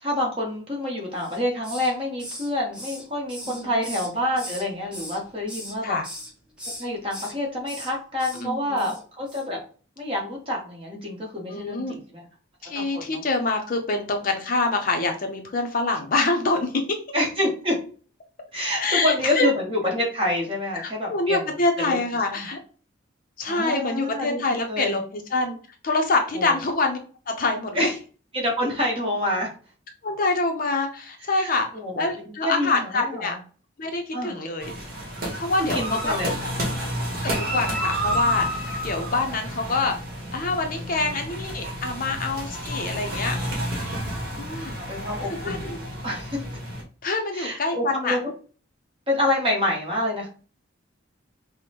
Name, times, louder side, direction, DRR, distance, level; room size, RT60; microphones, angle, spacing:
voice 1, 0.0-6.0 6.8-9.6 10.0-12.2 12.7-13.2 17.1-17.8 18.5-21.5 21.8-22.0 22.3-22.5 23.5-25.0 26.3-26.5 27.7-27.9 28.3-29.5 31.4-33.4 34.1-34.4 35.6-36.9 40.8-41.1 44.7-45.7 46.0-46.4 47.3-48.2 49.1-50.3, left 1 dB, 25° right, -1 dB, 1.1 m, -27 dB
Hiss, 1.2-1.9 2.2-4.6 4.9-5.7 6.0-6.3 6.6-7.3 7.6-7.9 8.2-8.4 8.8-9.0 9.3-9.4, equal, 5° right, 0.8 m, -38 dB
voice 2, 3.4-3.8 5.8-6.1 8.4-8.9 11.5-12.0 12.6-17.0 18.8-19.5 20.7-22.6 23.4-25.6 25.8-27.0 27.3-27.9 30.0-31.7 32.0-33.4 33.8-34.7 35.3-36.1 37.2-40.0 40.3-43.4 44.4-44.7 45.3-45.8 47.0-48.2, left 3 dB, 45° left, 4 dB, 0.6 m, -26 dB
sound 1, 34.6-46.8, equal, 45° right, 1.2 m, -30 dB
5.2 x 2.1 x 2.9 m, 0.39 s
head